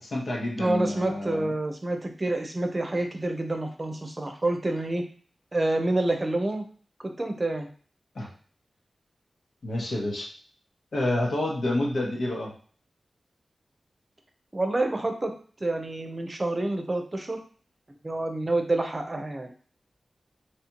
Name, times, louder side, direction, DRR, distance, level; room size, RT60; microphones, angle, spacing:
voice 1, 0.0-1.5 8.1-8.3 9.6-10.3 10.9-12.5, left 1 dB, 75° left, -3 dB, 1.4 m, -28 dB
voice 2, 0.6-5.0 5.5-6.6 7.0-7.7 14.5-15.3 15.6-17.4 18.0-19.5, right 2 dB, 30° right, 5 dB, 0.7 m, -28 dB
4.2 x 3.1 x 3.0 m, 0.43 s
wide cardioid pair, 65°, 0 cm